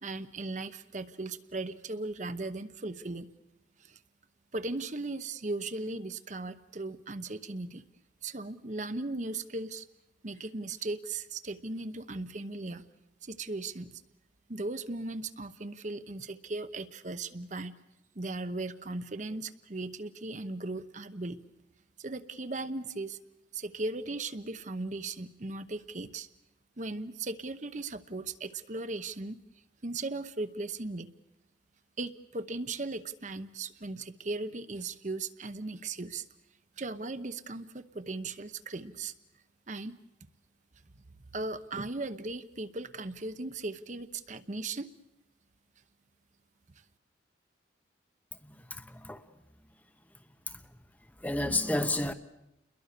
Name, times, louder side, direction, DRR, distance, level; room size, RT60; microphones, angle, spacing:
voice 1, 0.0-3.3 3.8-4.0 4.5-7.8 8.2-9.9 10.2-12.8 13.2-14.0 14.5-17.7 18.1-21.4 22.0-23.2 23.5-26.3 26.8-29.4 29.8-31.1 32.0-36.2 36.8-39.1 39.7-39.9 41.3-44.9, right 2 dB, 40° right, 0.9 m, -37 dB
voice 2, 48.4-49.3 50.5-50.6 51.2-52.1, left 2 dB, 10° left, 0.8 m, -31 dB
29.5 x 22.0 x 6.7 m
head